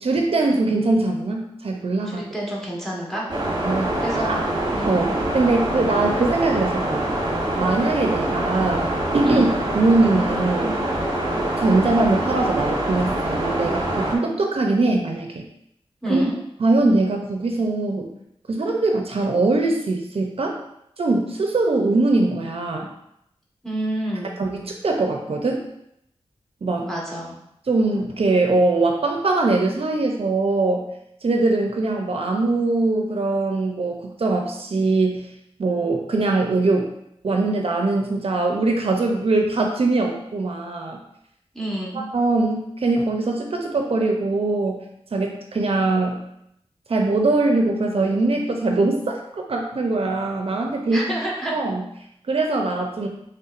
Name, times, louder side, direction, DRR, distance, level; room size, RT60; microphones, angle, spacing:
voice 1, 0.0-2.2 3.6-4.4 4.8-7.1 7.6-8.9 9.1-9.5 9.7-10.8 11.6-15.4 16.1-16.2 16.6-18.1 18.5-20.6 21.0-22.9 24.4-25.6 26.6-26.9 27.7-30.8 31.2-35.3 35.6-36.9 37.2-41.0 42.1-44.8 45.1-46.2 46.9-51.0 51.5-51.8 52.3-53.1, right 2 dB, 65° right, 1 dB, 0.6 m, -22 dB
voice 2, 2.0-3.3 4.0-4.4 4.7-5.2 9.2-9.5 16.0-16.4 23.6-24.3 26.8-27.4 41.5-42.0 50.9-51.5, right 1 dB, 5° left, -5 dB, 1.4 m, -28 dB
sound 1, 3.3-14.2, right 1 dB, 40° right, 1.1 m, -25 dB
5.5 x 3.5 x 2.5 m, 0.77 s
wide cardioid pair, 85°, 11 cm